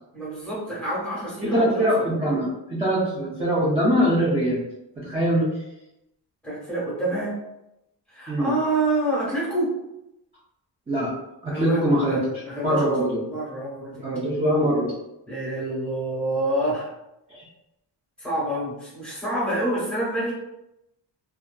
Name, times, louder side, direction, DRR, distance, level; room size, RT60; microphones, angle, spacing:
voice 1, 0.1-2.0 6.4-7.4 8.1-9.7 11.5-12.9 13.2-14.1 15.3-16.9 18.2-20.3, right 1 dB, ahead, -7 dB, 1.0 m, -27 dB
voice 2, 1.4-4.6 5.0-5.5 8.3-8.5 10.9-11.1 11.4-12.2 12.6-13.2 14.0-14.9 17.3-17.4, equal, 15° right, -8 dB, 0.4 m, -22 dB
2.6 x 2.3 x 2.2 m, 0.88 s
wide cardioid pair, 165°, 42 cm